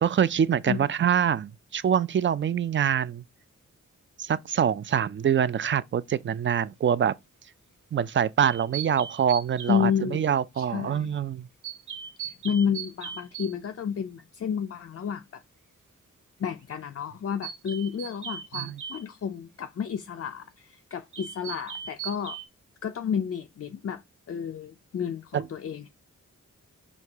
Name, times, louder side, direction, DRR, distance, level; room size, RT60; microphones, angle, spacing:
voice 1, 0.0-3.2 4.2-7.1 7.9-11.5 18.5-18.8 25.3-25.5, right 8 dB, 40° right, 0.4 m, -25 dB
sound 1, 8.4-9.8 11.6-13.5 17.4-19.1 21.1-22.5, right 8 dB, 65° right, 1.1 m, -38 dB
voice 2, 9.7-10.2 10.6-11.2 12.2-15.4 16.4-22.4 22.8-24.0 24.3-25.9, left 7 dB, 45° left, 0.5 m, -31 dB
4.6 x 2.8 x 3.4 m
cardioid pair, 50°, 32 cm